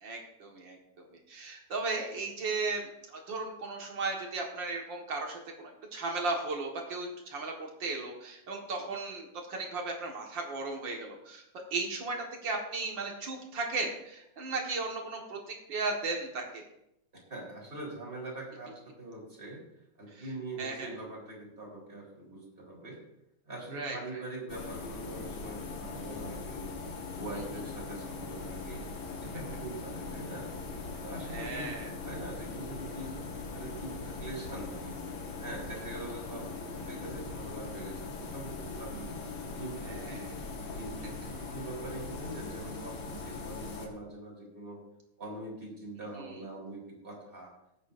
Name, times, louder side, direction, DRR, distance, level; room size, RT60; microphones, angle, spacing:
voice 1, 0.0-2.8 3.1-11.4 11.7-16.7 20.6-20.9 23.7-24.2 31.3-31.9 39.9-40.3 46.2-46.3, right 3 dB, 45° right, 1 dB, 1.8 m, -36 dB
voice 2, 17.1-19.6 20.0-23.0 23.4-26.6 27.1-28.8 29.2-30.5 31.0-35.0 35.4-39.1 39.6-40.3 40.6-44.8 45.2-47.5, right 2 dB, 15° right, -3 dB, 3.8 m, -43 dB
sound 1, 24.5-43.9, left 3 dB, 55° left, 1.5 m, -40 dB
19.0 x 9.3 x 2.6 m, 0.81 s
omnidirectional pair, 3.8 m